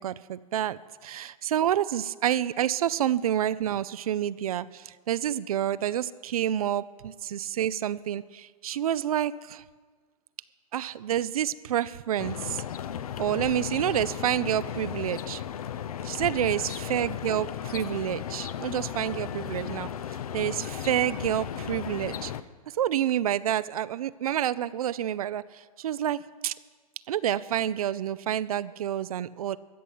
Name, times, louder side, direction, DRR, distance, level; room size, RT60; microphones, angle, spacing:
voice 1, 0.0-9.6 10.7-12.6 13.2-15.4 16.0-19.9 20.3-22.3 22.8-25.4 25.8-26.5 27.1-29.6, right 11 dB, 75° right, 17 dB, 0.5 m, -28 dB
sound 1, 12.2-22.4, left 9 dB, 75° left, 0.7 m, -35 dB
14.0 x 6.9 x 9.6 m, 1.4 s
hypercardioid pair, 125°, 19 cm